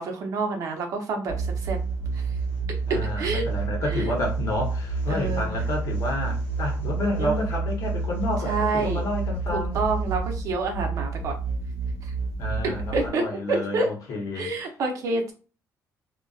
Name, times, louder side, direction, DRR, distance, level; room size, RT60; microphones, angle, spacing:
voice 1, 0.0-1.8 2.1-2.2 3.2-3.4 3.9-4.1 5.1-5.5 7.2-7.4 8.4-9.0 9.5-11.3 12.6-13.9 14.3-15.3, right 3 dB, 55° right, 0.6 m, -28 dB
sound 1, 1.3-13.1, right 4 dB, 35° left, 1.0 m, -29 dB
voice 2, 2.9-9.8 12.4-14.5, left 2 dB, 60° left, 0.8 m, -30 dB
2.4 x 2.2 x 2.3 m
cardioid pair, 140°, 7 cm